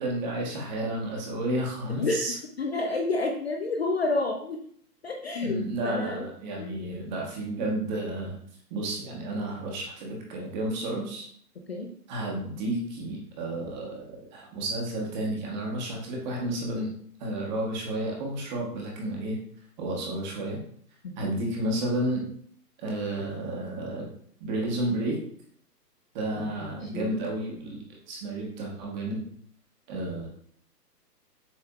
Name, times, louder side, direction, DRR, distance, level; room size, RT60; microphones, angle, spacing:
voice 1, 0.0-2.3 5.4-8.4 8.7-11.3 12.1-16.9 17.2-19.4 19.8-20.6 21.2-22.2 22.8-24.1 24.4-25.2 26.1-27.8 28.1-29.3 29.9-30.3, right 1 dB, 25° right, -2 dB, 1.2 m, -31 dB
voice 2, 1.9-4.6 5.0-6.3 6.6-6.8 11.7-11.9 21.0-21.4 26.4-27.1, left 3 dB, 40° left, 2 dB, 0.5 m, -30 dB
7.1 x 3.2 x 2.3 m, 0.62 s
hypercardioid pair, 140°, 49 cm